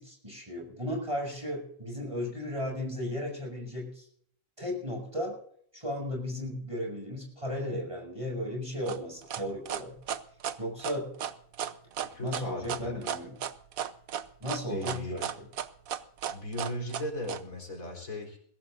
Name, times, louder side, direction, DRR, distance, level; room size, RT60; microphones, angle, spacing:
voice 1, 0.0-4.1 4.6-5.4 5.7-10.0 10.6-11.1 12.2-13.3 14.4-15.5, left 1 dB, 20° right, 0 dB, 7.1 m, -35 dB
sound 1, 8.9-17.4, right 9 dB, 90° right, 1.3 m, -35 dB
voice 2, 12.0-12.9 14.7-15.3 16.3-18.4, left 1 dB, 85° left, 1 dB, 4.6 m, -37 dB
22.0 x 16.5 x 2.6 m, 0.64 s
omnidirectional pair, 1.4 m